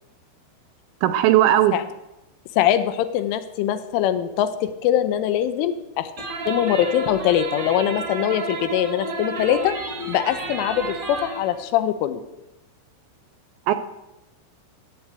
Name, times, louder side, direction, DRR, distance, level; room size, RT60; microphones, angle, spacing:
voice 1, 1.0-1.8 13.7-13.8, right 13 dB, 80° right, 11 dB, 2.7 m, -17 dB
voice 2, 2.6-6.1 6.5-9.7 10.1-12.2, left 11 dB, 85° left, 10 dB, 3.4 m, -22 dB
sound 1, 6.2-11.5, right 2 dB, 45° right, 1.5 m, -31 dB
16.5 x 8.3 x 7.9 m, 0.95 s
omnidirectional pair, 5.6 m